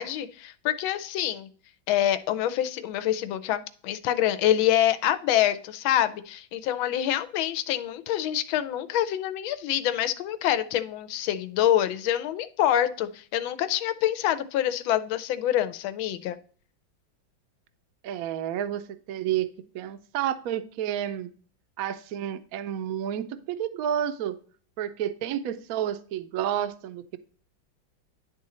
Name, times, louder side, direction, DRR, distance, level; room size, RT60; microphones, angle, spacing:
voice 1, 0.0-1.5 1.9-16.4, left 11 dB, 85° left, 12 dB, 1.5 m, -26 dB
voice 2, 18.0-21.3 21.8-24.3 24.8-27.2, right 10 dB, 70° right, 10 dB, 0.8 m, -30 dB
10.5 x 3.8 x 4.1 m, 0.43 s
omnidirectional pair, 2.1 m